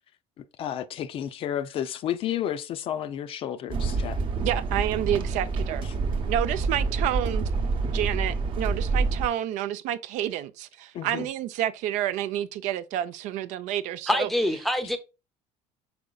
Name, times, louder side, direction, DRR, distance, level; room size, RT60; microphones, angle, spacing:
voice 1, 0.4-4.2 10.9-11.3, left 10 dB, 45° left, 0.4 m, -31 dB
sound 1, 3.7-9.3, right 3 dB, 40° right, 0.8 m, -27 dB
voice 2, 4.4-5.8 6.3-7.5 7.9-14.3, right 12 dB, 65° right, 0.4 m, -29 dB
voice 3, 14.1-15.0, left 1 dB, ahead, 0.6 m, -25 dB
5.1 x 4.7 x 2.3 m
cardioid pair, 145°, 14 cm